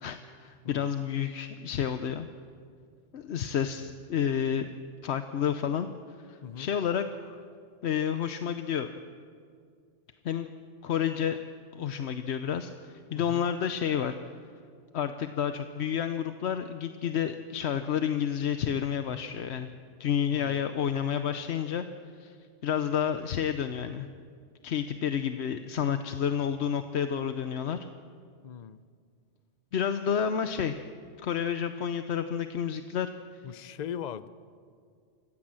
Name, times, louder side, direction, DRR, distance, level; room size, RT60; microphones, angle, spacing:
voice 1, 0.0-2.3 3.1-4.7 5.0-5.9 6.3-7.4 7.8-8.9 10.2-10.5 10.8-11.4 11.7-14.2 14.9-19.7 20.0-21.8 22.2-22.4 22.6-24.1 24.6-27.8 29.7-30.7 31.2-33.1, left 8 dB, 70° left, 9 dB, 1.0 m, -30 dB
voice 2, 13.1-13.5 20.3-20.6 28.4-28.8 33.4-34.3, left 9 dB, 45° left, 14 dB, 0.6 m, -40 dB
26.0 x 16.0 x 7.6 m, 2.2 s
omnidirectional pair, 1.2 m